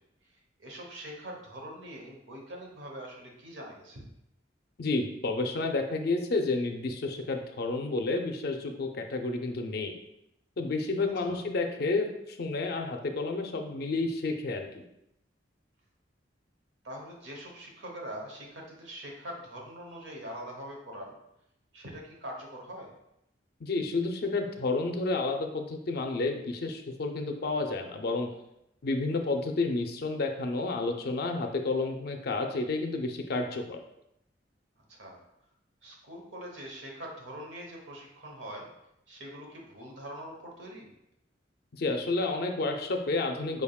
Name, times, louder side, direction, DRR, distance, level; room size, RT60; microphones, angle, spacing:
voice 1, 0.6-4.0 11.2-11.4 16.8-21.2 21.7-22.9 29.1-29.3 34.9-35.2 35.8-38.7 39.1-40.9, equal, 75° right, 0 dB, 1.0 m, -43 dB
voice 2, 4.8-9.9 10.6-12.1 12.4-14.7 23.6-28.3 28.8-33.8 41.8-43.6, left 3 dB, 55° left, 4 dB, 0.5 m, -30 dB
5.1 x 3.5 x 2.3 m, 0.82 s
head